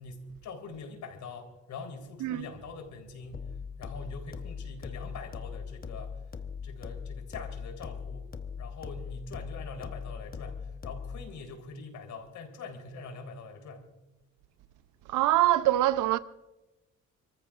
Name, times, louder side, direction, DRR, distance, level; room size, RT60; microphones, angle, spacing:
voice 1, 0.0-3.5 3.8-6.2 6.6-8.3 8.6-13.8, left 4 dB, 75° left, 4.0 m, -43 dB
sound 1, 3.3-11.3, left 6 dB, 30° left, 1.0 m, -40 dB
voice 2, 15.1-16.2, right 14 dB, 90° right, 0.7 m, -24 dB
30.0 x 14.0 x 2.5 m
cardioid pair, 90°, 30 cm